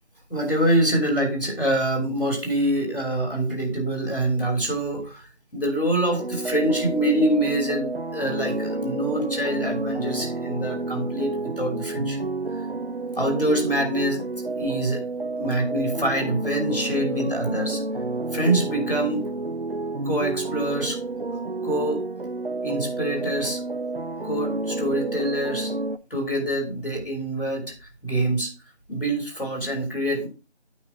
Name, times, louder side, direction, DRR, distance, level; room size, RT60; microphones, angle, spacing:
voice 1, 0.3-5.3 5.5-12.2 13.2-14.3 14.6-15.0 15.4-17.8 18.3-19.3 20.0-21.0 21.6-22.0 22.6-23.6 24.2-25.7 26.1-27.7 28.0-28.5 28.9-30.3, right 1 dB, 50° left, 2 dB, 3.1 m, -25 dB
sound 1, 6.0-26.0, right 2 dB, 55° right, 0.5 m, -30 dB
8.7 x 5.2 x 4.3 m, 0.32 s
figure-of-eight pair, 180°, 34 cm